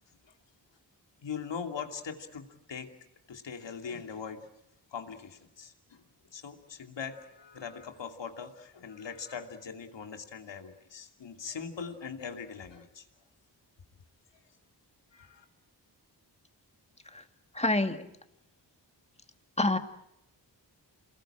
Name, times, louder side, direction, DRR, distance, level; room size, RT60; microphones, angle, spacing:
voice 1, 1.2-2.9 3.3-4.5 4.9-6.0 6.3-13.1 15.1-15.4, left 6 dB, 80° left, 5 dB, 2.8 m, -41 dB
voice 2, 17.5-18.1 19.6-19.8, left 2 dB, 15° left, 8 dB, 2.1 m, -27 dB
28.0 x 20.5 x 8.9 m, 0.81 s
wide cardioid pair, 70°, 43 cm